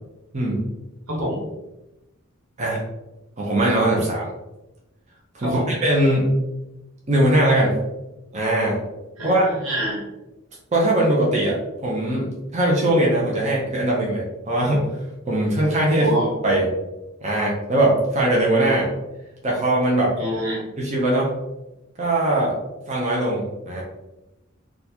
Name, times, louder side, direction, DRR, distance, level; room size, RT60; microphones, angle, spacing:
voice 1, 0.3-0.7 2.6-2.8 3.4-4.2 5.3-6.3 7.1-7.8 8.3-8.8 9.2-9.6 10.7-14.9 15.3-16.1 16.4-16.7 17.2-18.9 19.4-20.1 20.8-21.3 22.0-22.5 22.9-23.8, right 1 dB, 35° right, -4 dB, 0.6 m, -20 dB
voice 2, 1.1-1.4 5.4-5.7 9.2-10.0 15.9-16.3 20.2-20.6, equal, 85° right, -3 dB, 1.2 m, -26 dB
3.7 x 2.3 x 2.8 m, 0.99 s
head